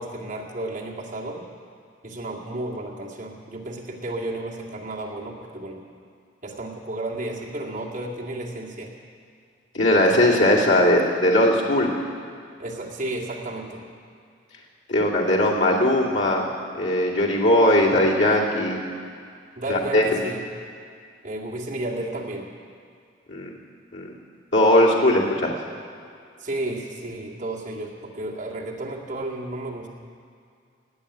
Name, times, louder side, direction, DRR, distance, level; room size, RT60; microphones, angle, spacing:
voice 1, 0.0-1.5 2.0-5.8 6.4-8.9 12.6-13.8 19.6-20.4 21.2-22.5 26.4-29.9, right 2 dB, 40° right, -3 dB, 2.2 m, -32 dB
voice 2, 9.7-11.9 14.9-16.5 16.7-18.8 19.7-20.2 23.3-23.5 23.9-24.1 24.5-25.5, left 1 dB, 75° left, -4 dB, 2.5 m, -19 dB
18.0 x 7.7 x 9.8 m, 2.3 s
head